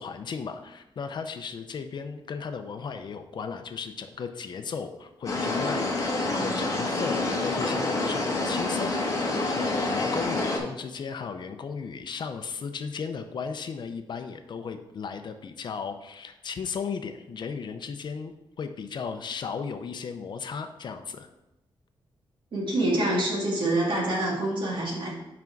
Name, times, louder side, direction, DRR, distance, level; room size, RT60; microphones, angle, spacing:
voice 1, 0.0-21.3, left 6 dB, 55° left, 8 dB, 0.6 m, -35 dB
sound 1, 5.3-10.6, left 2 dB, 35° left, 1.2 m, -27 dB
voice 2, 22.5-25.1, right 1 dB, 65° right, -3 dB, 2.2 m, -26 dB
5.9 x 5.1 x 4.6 m, 0.93 s
wide cardioid pair, 155°, 9 cm